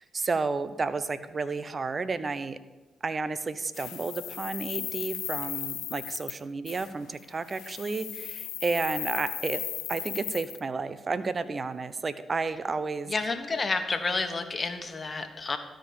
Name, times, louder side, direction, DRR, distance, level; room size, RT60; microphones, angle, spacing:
voice 1, 0.0-2.6 3.0-9.6 9.9-13.1, right 4 dB, 45° right, 13 dB, 0.7 m, -31 dB
sound 1, 3.7-6.4 6.7-6.9 7.5-10.6, left 11 dB, 80° left, 0.5 m, -36 dB
voice 2, 13.1-15.6, left 3 dB, 40° left, 7 dB, 1.3 m, -30 dB
13.0 x 5.1 x 7.0 m, 1.1 s
supercardioid pair, 50°, 0 cm